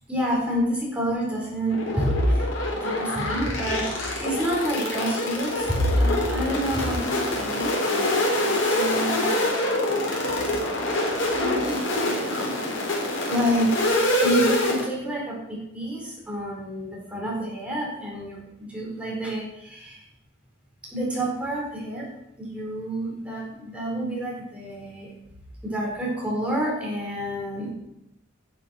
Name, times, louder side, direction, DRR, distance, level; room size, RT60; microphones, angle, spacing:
voice 1, 0.1-9.5 9.9-10.5 11.0-12.8 13.2-15.4 15.7-20.0 20.9-22.1 22.4-25.1 25.6-27.7, equal, 5° right, -4 dB, 4.7 m, -28 dB
sound 1, 1.7-14.8, left 1 dB, 85° left, 3.7 m, -25 dB
11.5 x 7.6 x 6.0 m, 0.82 s
head